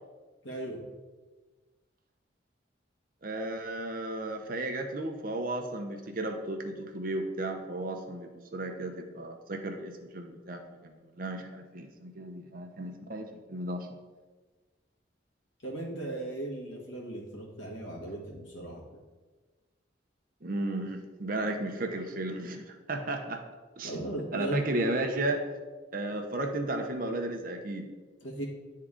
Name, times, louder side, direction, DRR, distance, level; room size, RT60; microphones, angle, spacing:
voice 1, 0.4-0.8 15.6-19.0 23.8-24.7 28.2-28.4, right 1 dB, 85° left, -2 dB, 1.6 m, -37 dB
voice 2, 3.2-13.9 20.4-23.4 23.8-23.9 24.3-25.4 25.9-27.9, right 2 dB, 45° right, 4 dB, 0.7 m, -34 dB
9.5 x 3.7 x 3.7 m, 1.3 s
head